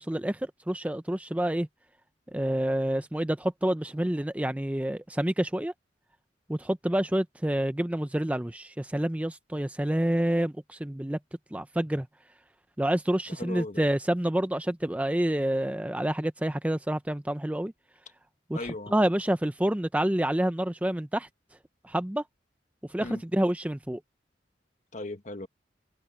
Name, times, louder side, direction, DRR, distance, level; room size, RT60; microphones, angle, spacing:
voice 1, 0.0-1.7 2.3-5.7 6.5-11.2 11.5-12.1 12.8-17.7 18.5-18.6 18.9-21.3 21.8-22.2 22.9-24.0, right 1 dB, 10° right, 0.5 m, -28 dB
voice 2, 13.3-13.8 18.5-18.9 23.0-23.2 24.9-25.5, left 2 dB, 40° left, 1.5 m, -37 dB
head